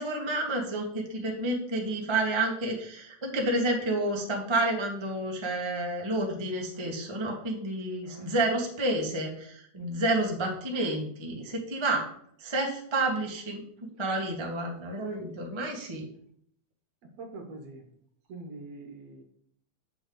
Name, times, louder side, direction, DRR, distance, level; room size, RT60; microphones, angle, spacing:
voice 1, 0.0-12.0 12.4-13.6 14.0-16.0, right 2 dB, 25° right, 0 dB, 0.6 m, -30 dB
voice 2, 8.0-8.4 17.2-17.9 18.3-19.2, right 2 dB, 65° right, 3 dB, 2.1 m, -44 dB
8.6 x 6.8 x 3.9 m, 0.65 s
omnidirectional pair, 3.4 m